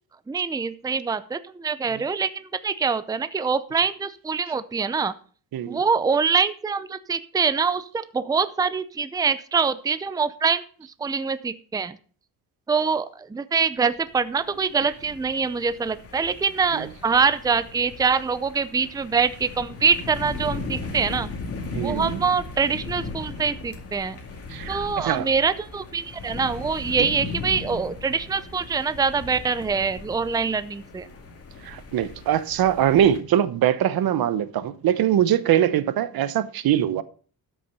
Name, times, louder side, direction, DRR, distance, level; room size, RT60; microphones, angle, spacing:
voice 1, 0.3-5.1 5.7-12.0 12.7-21.3 21.7-24.2 24.7-31.1, right 5 dB, 10° right, 0.5 m, -24 dB
sound 1, 14.1-33.2, left 3 dB, 40° left, 2.3 m, -37 dB
voice 2, 21.7-22.2 24.5-25.3 27.0-27.1 31.6-37.0, right 10 dB, 75° right, 1.0 m, -22 dB
13.0 x 6.1 x 5.4 m
cardioid pair, 130°, 37 cm